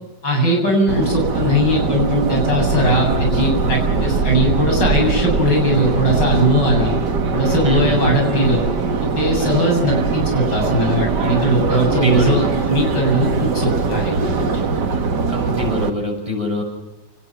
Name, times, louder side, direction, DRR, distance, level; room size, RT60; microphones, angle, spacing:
voice 1, 0.2-6.9 7.3-8.6 9.0-14.5, equal, 70° left, 2 dB, 8.6 m, -19 dB
Subway metro underground, 0.9-15.9, right 4 dB, 65° right, 2.2 m, -21 dB
voice 2, 7.6-8.2 11.7-12.5 15.3-16.6, equal, 15° right, 0 dB, 7.9 m, -24 dB
29.0 x 19.5 x 6.0 m, 1.0 s
omnidirectional pair, 2.0 m